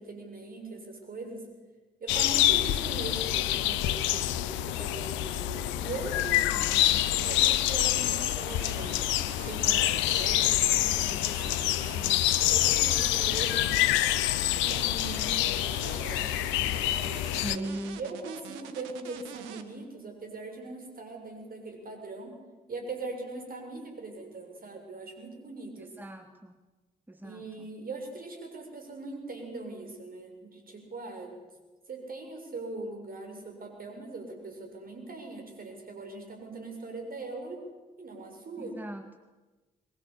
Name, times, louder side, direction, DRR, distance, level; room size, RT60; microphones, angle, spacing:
voice 1, 0.0-1.5 2.0-9.0 9.4-14.1 14.5-22.4 22.7-25.9 27.2-31.4 31.9-37.6 38.0-38.8, right 3 dB, 50° right, 4 dB, 7.1 m, -41 dB
sound 1, 2.1-17.6, left 14 dB, 75° left, 0.8 m, -26 dB
voice 2, 6.6-7.0 17.3-18.0 25.8-26.5 27.1-27.7 38.6-39.2, right 1 dB, 10° right, 8 dB, 1.9 m, -40 dB
sound 2, 6.8-19.6, right 10 dB, 75° right, 1.6 m, -46 dB
23.5 x 20.0 x 8.6 m, 1.2 s
hypercardioid pair, 40°, 20 cm